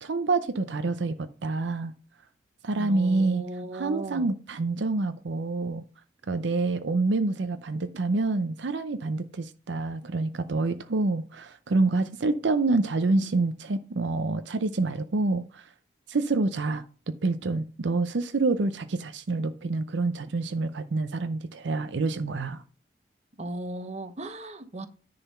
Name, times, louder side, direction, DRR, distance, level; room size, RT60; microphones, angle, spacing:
voice 1, 0.0-1.9 2.6-3.4 3.7-5.8 6.3-15.7 16.1-16.8 17.2-22.6, right 3 dB, 70° right, 0.6 m, -27 dB
voice 2, 2.7-4.3 23.4-24.9, right 1 dB, 35° right, 1.0 m, -36 dB
10.0 x 4.0 x 5.4 m
head